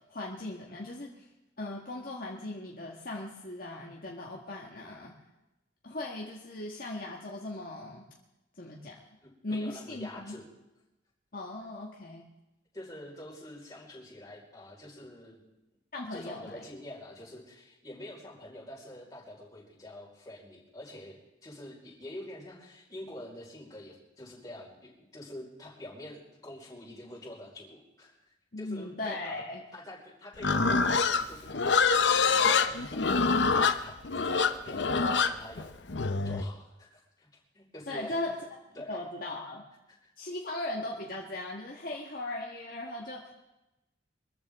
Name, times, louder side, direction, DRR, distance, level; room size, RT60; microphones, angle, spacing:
voice 1, 0.1-1.3 1.6-5.1 5.8-8.0 8.5-9.0 9.4-10.4 11.3-12.2 15.9-16.7 28.5-29.6 37.9-38.4 38.9-39.7 40.2-43.3, left 2 dB, 50° left, -2 dB, 1.7 m, -38 dB
voice 2, 9.2-10.5 12.7-15.4 16.1-28.1 28.6-29.4 29.7-35.8 36.2-38.2 38.7-39.0 39.9-40.1, left 1 dB, 20° left, -4 dB, 4.9 m, -47 dB
Livestock farm animals working animals, 30.4-36.5, left 5 dB, 80° left, 0.8 m, -25 dB
24.0 x 14.5 x 3.7 m, 0.96 s
head